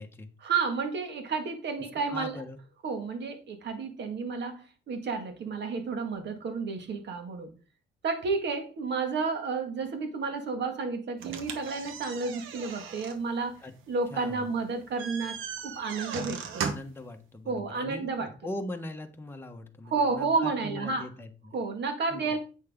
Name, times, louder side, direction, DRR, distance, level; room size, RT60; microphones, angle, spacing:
voice 1, 0.4-2.4 2.8-7.5 8.0-13.6 13.9-15.4 15.6-16.7 17.5-18.3 19.9-21.1 21.5-22.4, right 4 dB, 60° right, 1.9 m, -31 dB
voice 2, 2.1-2.6 13.6-13.7 14.1-14.5 16.6-21.6 22.1-22.3, left 2 dB, 10° left, 1.2 m, -40 dB
sound 1, 11.2-17.0, right 6 dB, 85° right, 1.2 m, -38 dB
8.2 x 6.2 x 3.7 m
cardioid pair, 90°, 20 cm